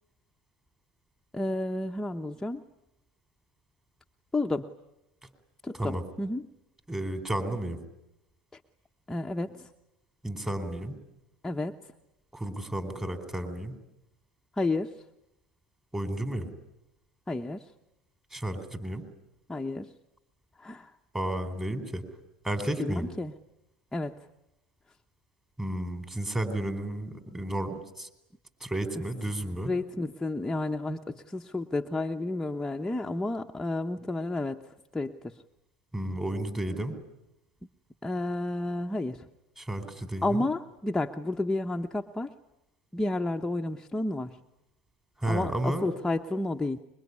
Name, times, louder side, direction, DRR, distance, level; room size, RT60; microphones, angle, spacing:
voice 1, 1.3-2.6 4.3-4.7 5.6-6.5 9.1-9.7 11.4-11.8 14.6-14.9 17.3-17.7 19.5-19.9 20.6-20.9 22.8-23.3 23.9-24.2 29.6-34.6 34.9-35.4 38.0-39.2 40.2-42.3 42.9-44.4 45.3-46.8, left 2 dB, 10° left, 3 dB, 1.0 m, -31 dB
voice 2, 6.9-7.8 10.2-10.9 12.3-13.7 15.9-16.5 18.3-19.0 21.1-22.0 22.4-23.1 25.6-28.1 28.6-29.7 35.9-36.9 39.6-40.5 45.2-45.9, right 1 dB, 15° right, 8 dB, 4.4 m, -32 dB
25.0 x 23.0 x 9.8 m, 0.87 s
supercardioid pair, 100°, 4 cm